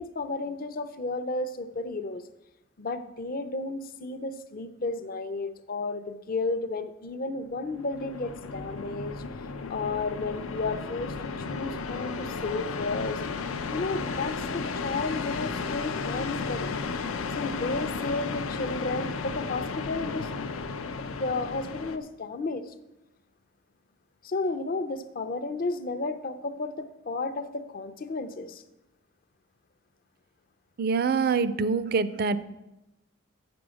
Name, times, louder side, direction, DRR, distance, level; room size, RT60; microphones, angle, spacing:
voice 1, 0.0-2.2 2.8-9.2 9.7-16.7 17.3-20.3 20.8-22.7 24.2-28.6, left 3 dB, 45° left, 9 dB, 0.5 m, -33 dB
sound 1, 7.5-22.0, left 4 dB, 90° left, 0.6 m, -34 dB
voice 2, 30.8-32.4, right 5 dB, 50° right, 14 dB, 0.4 m, -25 dB
7.6 x 6.1 x 6.2 m, 0.95 s
head